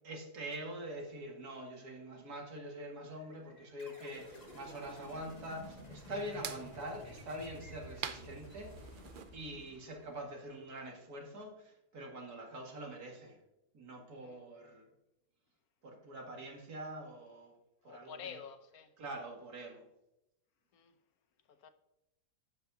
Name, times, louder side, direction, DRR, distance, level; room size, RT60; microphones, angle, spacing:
voice 1, 0.0-13.4 13.7-14.9 15.8-17.6 17.8-18.2 19.0-19.8, right 1 dB, 85° right, 2.5 m, -45 dB
sound 1, 3.0-10.9, right 2 dB, 20° right, 1.3 m, -66 dB
sound 2, 3.8-10.3, left 1 dB, 30° left, 1.3 m, -53 dB
sound 3, 4.1-9.3, right 7 dB, 60° right, 0.5 m, -49 dB
voice 2, 17.8-19.0 20.7-21.0 21.4-21.7, left 7 dB, 75° left, 1.3 m, -49 dB
11.0 x 8.3 x 2.8 m
omnidirectional pair, 1.6 m